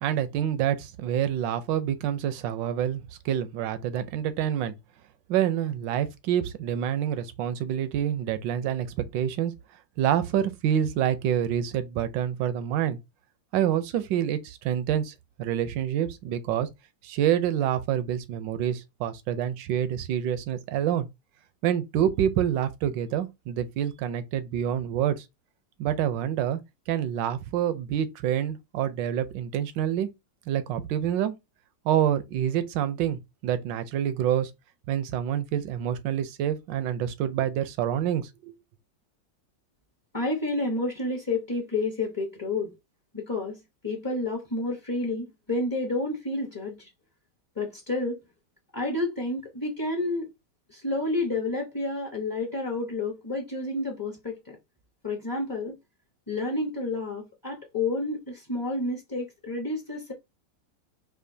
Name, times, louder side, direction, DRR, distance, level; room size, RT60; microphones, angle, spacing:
voice 1, 0.0-4.7 5.3-8.9 9.1-9.5 10.0-13.0 13.5-16.7 17.0-21.1 21.6-25.2 25.8-26.6 26.9-30.1 30.5-31.3 31.8-34.5 34.9-38.5, right 10 dB, 85° right, 1.3 m, -27 dB
voice 2, 40.1-42.7 43.1-46.9 47.6-48.2 48.7-50.3 50.7-54.6 55.0-55.7 56.3-60.1, left 2 dB, 25° left, 0.4 m, -30 dB
4.9 x 2.4 x 2.6 m
omnidirectional pair, 1.9 m